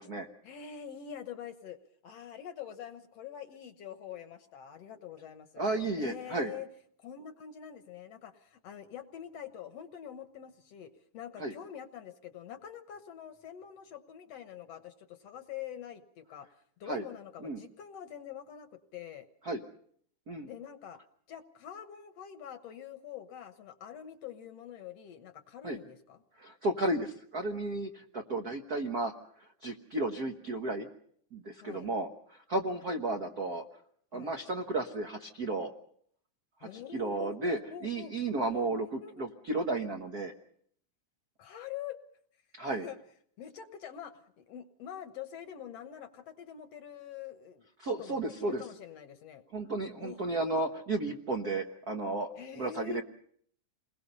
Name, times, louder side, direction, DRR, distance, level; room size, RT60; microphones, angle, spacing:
voice 1, 0.4-1.8 2.0-5.7 6.0-6.7 7.0-16.5 16.8-19.3 20.4-21.0 21.3-26.2 31.6-31.9 34.1-34.3 36.6-38.3 38.8-39.3 41.4-42.0 42.7-43.0 43.4-49.4 50.0-50.2 52.4-53.0, left 9 dB, 65° left, 9 dB, 1.8 m, -45 dB
voice 2, 5.6-6.5 11.4-11.5 16.9-17.0 17.4-17.6 19.4-19.6 20.3-20.5 25.6-25.8 26.4-29.1 29.6-30.9 31.3-33.6 34.1-35.7 36.6-40.3 42.5-42.9 47.8-48.6 49.5-53.0, right 2 dB, 70° right, 4 dB, 0.8 m, -33 dB
28.5 x 21.5 x 5.4 m, 0.63 s
omnidirectional pair, 3.6 m